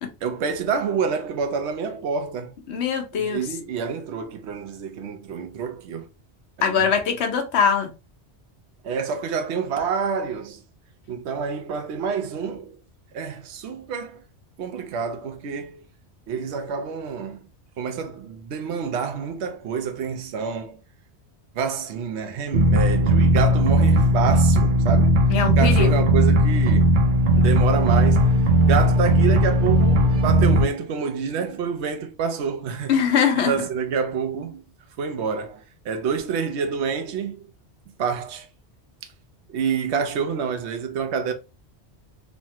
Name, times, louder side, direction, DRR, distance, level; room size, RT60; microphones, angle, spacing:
voice 1, 0.2-2.5 3.1-6.1 6.6-6.9 8.8-10.6 11.1-12.8 13.1-14.2 14.6-15.8 16.3-17.5 17.8-20.8 21.5-25.2 25.6-27.0 27.4-33.0 33.4-34.6 35.0-37.5 38.0-38.5 39.5-41.3, right 6 dB, 80° right, 0.9 m, -28 dB
voice 2, 2.7-3.4 6.6-7.9 25.3-25.9 32.9-33.5, left 7 dB, 75° left, 1.0 m, -22 dB
sound 1, 22.5-30.6, right 1 dB, 55° right, 0.7 m, -17 dB
3.2 x 2.1 x 2.7 m
omnidirectional pair, 1.1 m